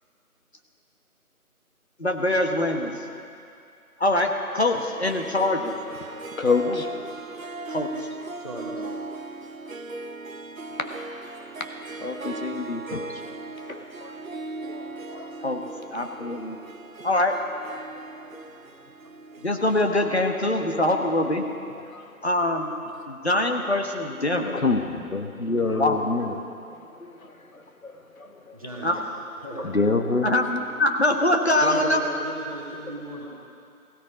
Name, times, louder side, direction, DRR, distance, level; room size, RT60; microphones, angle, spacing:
voice 1, 2.0-2.9 4.0-5.7 6.7-6.8 7.7-7.9 15.4-15.6 15.9-16.6 17.0-17.4 19.4-21.5 22.2-22.7 23.1-24.6 25.5-26.3 28.8-29.0 30.2-32.0, left 1 dB, 45° left, 3 dB, 1.3 m, -24 dB
Harp, 4.7-21.5, right 2 dB, 65° right, 0.8 m, -39 dB
voice 2, 6.1-6.9 10.8-10.9 11.6-11.7 12.0-13.1 13.7-14.1 14.7-15.3 16.2-16.3 18.3-18.4 21.9-22.0 24.2-26.4 27.0-27.1 27.8-27.9 28.2-28.5 29.6-30.3, left 3 dB, 65° left, 5 dB, 1.5 m, -27 dB
voice 3, 8.4-8.9 28.5-28.9 29.4-29.7 31.6-33.3, right 1 dB, 25° right, -7 dB, 1.9 m, -35 dB
16.5 x 16.0 x 5.1 m, 2.5 s
figure-of-eight pair, 175°, 44 cm